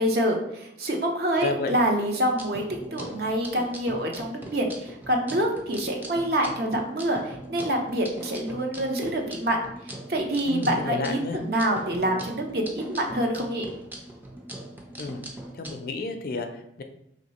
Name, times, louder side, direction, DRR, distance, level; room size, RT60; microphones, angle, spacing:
voice 1, 0.0-2.6 2.9-9.6 9.9-13.7, right 1 dB, 55° right, 2 dB, 0.7 m, -26 dB
voice 2, 1.4-1.7 10.5-11.4 15.0-15.2 15.5-16.8, left 3 dB, 55° left, 6 dB, 0.4 m, -31 dB
sound 1, 2.2-15.8, right 1 dB, 10° right, 0.4 m, -41 dB
3.1 x 2.9 x 4.2 m, 0.78 s
head